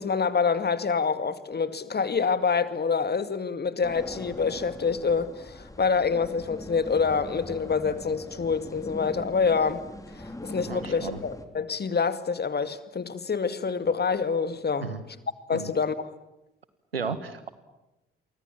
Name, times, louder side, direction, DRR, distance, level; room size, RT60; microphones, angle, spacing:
voice 1, 0.0-9.9 10.2-14.9 15.5-16.1, left 5 dB, 35° left, 2.3 m, -26 dB
sound 1, 3.8-11.4, left 1 dB, 10° left, 3.7 m, -41 dB
voice 2, 10.7-11.2 14.8-15.0 15.5-15.7 16.9-17.5, right 5 dB, 90° right, 1.5 m, -34 dB
29.5 x 24.0 x 7.5 m
figure-of-eight pair, 40°, 29 cm